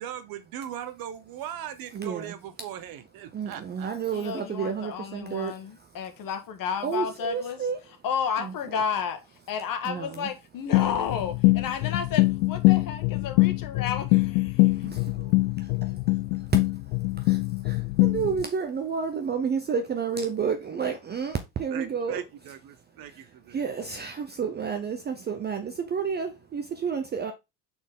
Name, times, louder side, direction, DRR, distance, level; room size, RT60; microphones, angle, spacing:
voice 1, 0.0-3.9 21.7-23.6, right 10 dB, 45° right, 1.0 m, -39 dB
voice 2, 1.9-2.4 3.3-6.3 6.8-7.8 8.4-8.8 9.8-10.3 14.5-22.3 22.7-27.3, right 6 dB, 20° right, 0.6 m, -31 dB
voice 3, 4.1-7.6 8.0-9.2 9.5-14.7, left 7 dB, 45° left, 1.4 m, -32 dB
sound 1, 10.7-18.4, left 23 dB, 85° left, 0.5 m, -23 dB
5.9 x 4.4 x 3.7 m
cardioid pair, 135°, 49 cm